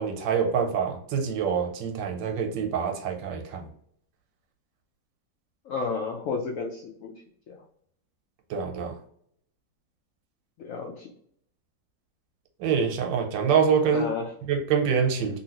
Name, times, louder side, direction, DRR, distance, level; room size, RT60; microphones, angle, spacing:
voice 1, 0.0-3.7 8.5-8.9 12.6-14.0 14.5-15.4, right 6 dB, 90° right, 3 dB, 1.4 m, -25 dB
voice 2, 5.7-7.1 7.5-7.6 10.6-11.1 13.8-14.3, left 4 dB, 85° left, 0 dB, 0.7 m, -32 dB
2.8 x 2.8 x 2.8 m, 0.66 s
omnidirectional pair, 1.9 m